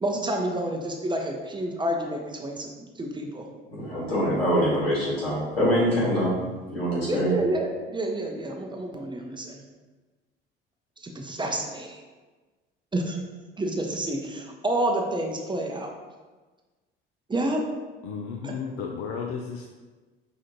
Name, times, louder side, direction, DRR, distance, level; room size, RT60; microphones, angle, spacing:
voice 1, 0.0-2.7 3.0-3.5 7.1-9.6 11.0-12.0 12.9-13.2 13.6-15.9 17.3-17.6 18.4-18.6, right 1 dB, 15° right, 1 dB, 0.6 m, -29 dB
voice 2, 3.7-6.3 6.7-7.3, equal, 85° left, -8 dB, 1.4 m, -24 dB
voice 3, 18.0-19.7, left 6 dB, 55° left, 1 dB, 0.4 m, -33 dB
5.1 x 2.4 x 2.9 m, 1.3 s
figure-of-eight pair, 55°, 29 cm